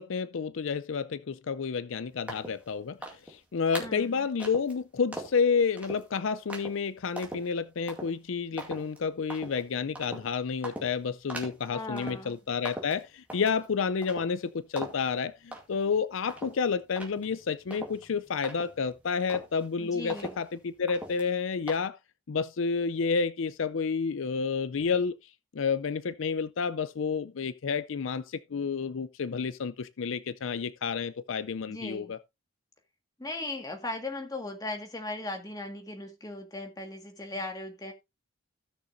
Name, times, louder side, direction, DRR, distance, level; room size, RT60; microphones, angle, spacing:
voice 1, 0.0-22.0 22.3-25.2 25.5-32.2, left 5 dB, 70° left, 0.5 m, -30 dB
sound 1, 2.3-2.6 3.0-3.4 3.7-4.0 4.4-4.7 5.1-5.4 5.8-6.1 6.5-6.8 7.2-7.5 7.9-8.1 8.6-9.0 9.3-9.6 10.0-10.3 10.6-10.9 11.3-11.7 12.0-12.3 12.7-13.7 14.0-14.5 14.8-15.1 15.5-15.9 16.3-19.0 19.3-19.7 20.1-20.6 20.9-21.3 21.7-21.8, right 1 dB, 5° right, 2.2 m, -41 dB
voice 2, 3.8-4.3 11.7-12.3 19.8-20.4 31.7-32.1 33.2-37.9, left 2 dB, 20° left, 1.7 m, -38 dB
16.5 x 6.4 x 2.6 m
head